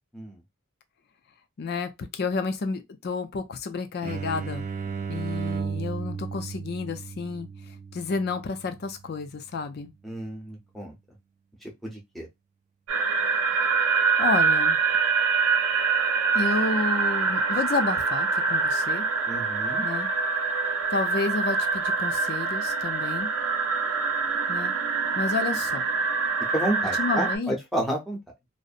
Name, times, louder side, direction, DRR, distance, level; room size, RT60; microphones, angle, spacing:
voice 1, 1.6-4.7 5.1-7.5 7.9-9.9 14.2-14.8 16.3-19.1 19.8-20.1 20.9-23.3 24.5-24.7 25.2-25.8 27.0-27.6, left 4 dB, 50° left, 0.4 m, -30 dB
sound 1, 4.0-9.5, right 6 dB, 35° right, 0.3 m, -35 dB
voice 2, 10.0-10.9 11.6-12.3 19.3-19.8 26.5-28.2, right 1 dB, ahead, 0.7 m, -31 dB
sound 2, 12.9-27.4, right 4 dB, 80° right, 0.6 m, -25 dB
2.6 x 2.0 x 2.4 m
head